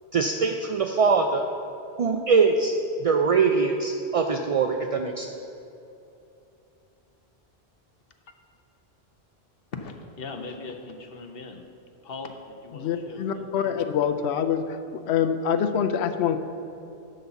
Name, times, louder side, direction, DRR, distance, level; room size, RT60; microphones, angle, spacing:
voice 1, 0.1-1.5 2.0-2.7 3.0-5.3, right 5 dB, 55° right, 4 dB, 0.4 m, -22 dB
voice 2, 9.7-11.6 12.0-13.9, left 4 dB, 65° left, 5 dB, 1.0 m, -39 dB
voice 3, 12.8-14.6 14.9-16.4, left 8 dB, 90° left, 8 dB, 0.8 m, -25 dB
11.5 x 4.1 x 6.9 m, 2.8 s
omnidirectional pair, 1.1 m